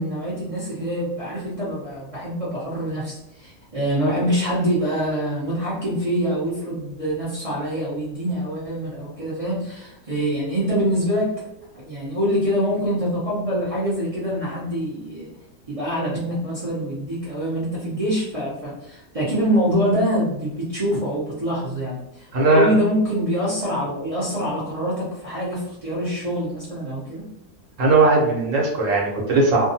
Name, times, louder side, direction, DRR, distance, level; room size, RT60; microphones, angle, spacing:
voice 1, 0.0-11.5 11.7-15.3 15.7-27.2, equal, 40° right, -8 dB, 0.5 m, -25 dB
voice 2, 22.3-22.7 27.8-29.7, right 3 dB, 60° right, -3 dB, 1.1 m, -18 dB
2.6 x 2.3 x 2.7 m, 0.83 s
omnidirectional pair, 1.7 m